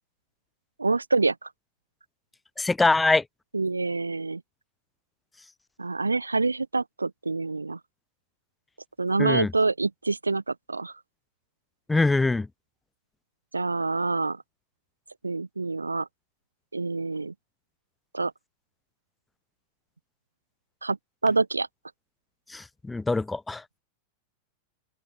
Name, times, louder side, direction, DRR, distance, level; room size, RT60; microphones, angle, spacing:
voice 1, 0.8-1.5 3.5-4.4 5.8-7.8 9.0-10.9 13.5-14.4 15.2-16.1 16.7-17.3 18.1-18.3 20.8-21.0 21.2-21.7, right 3 dB, 80° right, 1.9 m, -26 dB
voice 2, 2.6-3.2 9.2-9.5 11.9-12.5 22.5-23.6, left 3 dB, 10° left, 2.4 m, -23 dB
open air
figure-of-eight pair, 90°, 0 cm